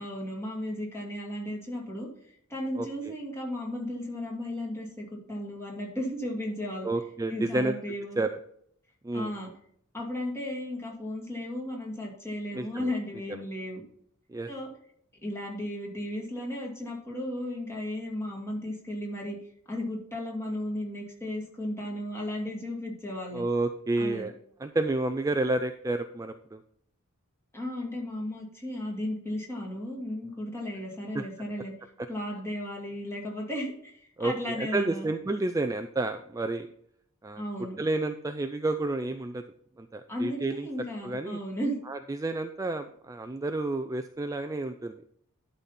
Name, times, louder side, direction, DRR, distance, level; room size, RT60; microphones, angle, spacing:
voice 1, 0.0-2.1 2.5-6.9 7.3-8.2 9.1-9.5 9.9-13.8 14.5-14.7 15.2-19.4 19.7-23.4 24.0-24.3 27.5-31.7 32.1-35.1 37.4-37.8 40.1-41.8, left 1 dB, 10° left, -2 dB, 2.4 m, -35 dB
voice 2, 2.8-3.1 6.8-7.7 8.2-8.3 9.0-9.3 12.5-12.9 14.3-14.5 23.3-24.3 24.6-26.6 31.1-31.2 34.2-36.7 37.2-37.4 37.8-39.4 39.8-40.7 41.0-41.4 41.9-45.0, right 2 dB, 15° right, 8 dB, 0.3 m, -30 dB
12.0 x 4.1 x 5.8 m, 0.67 s
head